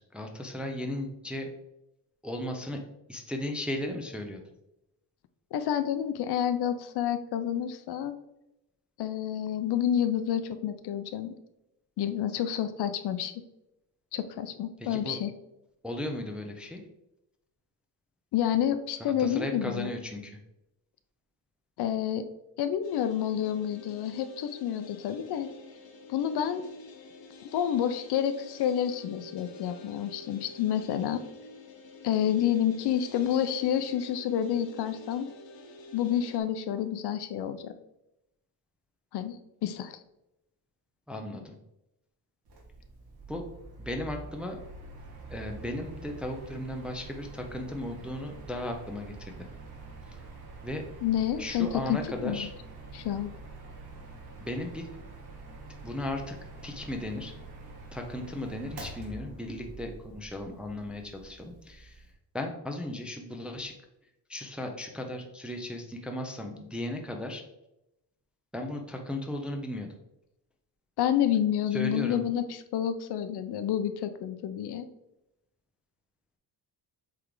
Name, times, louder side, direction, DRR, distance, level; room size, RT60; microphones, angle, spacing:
voice 1, 0.1-1.5 2.2-2.8 3.1-4.4 14.8-15.2 15.8-16.8 19.0-20.4 41.1-41.6 43.3-43.5 43.8-44.6 45.3-49.5 50.6-50.8 51.4-52.5 54.4-54.9 55.8-56.4 56.6-57.3 57.9-62.0 62.3-63.7 64.3-67.4 68.5-69.9 71.7-72.2, left 1 dB, 5° right, 3 dB, 0.4 m, -36 dB
voice 2, 5.5-8.2 9.0-11.3 12.0-13.4 14.1-15.3 18.3-19.9 21.8-22.3 22.6-25.5 26.1-26.6 27.5-31.2 32.0-35.3 35.9-37.7 39.1-40.0 51.0-52.5 52.9-53.3 71.0-74.9, left 10 dB, 65° left, 10 dB, 0.6 m, -29 dB
sound 1, 22.8-36.4, left 2 dB, 80° left, 1.1 m, -48 dB
Mechanical fan, 42.5-62.1, right 3 dB, 60° right, 1.7 m, -46 dB
7.8 x 3.4 x 3.8 m, 0.88 s
cardioid pair, 175°, 43 cm